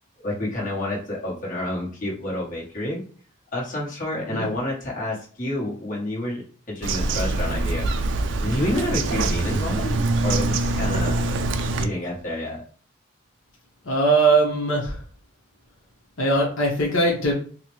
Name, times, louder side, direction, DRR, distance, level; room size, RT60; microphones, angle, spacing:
voice 1, 0.2-3.0 3.5-8.1 8.4-11.2 11.8-12.6, left 1 dB, 40° left, -4 dB, 1.1 m, -29 dB
Bird vocalization bird call bird song, 6.8-11.8, right 2 dB, 65° right, 0.3 m, -24 dB
voice 2, 13.8-15.0 16.2-17.3, right 2 dB, 75° left, -2 dB, 0.8 m, -20 dB
4.1 x 2.1 x 3.0 m, 0.43 s
head